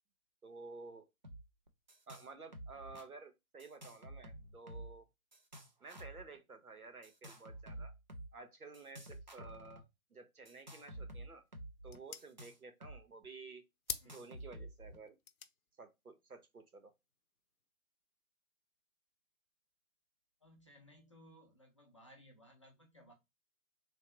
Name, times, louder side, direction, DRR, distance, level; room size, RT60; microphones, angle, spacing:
voice 1, 0.4-1.1 2.1-5.0 5.8-7.9 8.3-11.4 11.8-13.6 14.0-15.2 15.8-16.9, right 3 dB, 85° right, 1.0 m, -53 dB
sound 1, 1.2-1.4 1.7-2.3 2.5-3.1 3.6-5.0 5.3-6.2 7.0-8.3 8.7-9.8 10.5-13.0 13.2-13.3 13.9-15.0, right 1 dB, 35° right, 0.4 m, -50 dB
voice 2, 10.8-11.1 14.0-14.3 20.4-23.1, equal, 20° left, 0.5 m, -62 dB
sound 2, 10.9-17.7, left 7 dB, 75° left, 0.6 m, -51 dB
3.1 x 2.6 x 2.9 m
figure-of-eight pair, 135°, 43 cm